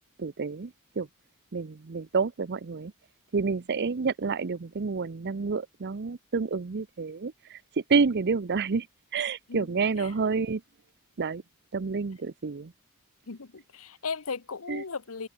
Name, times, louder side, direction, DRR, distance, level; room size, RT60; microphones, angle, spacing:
voice 1, 0.2-1.1 1.5-2.9 3.3-8.9 9.1-10.6 11.2-11.4 11.7-12.7 14.7-14.8, right 4 dB, 50° right, 0.6 m, -29 dB
voice 2, 13.3-15.3, left 5 dB, 75° left, 1.0 m, -36 dB
head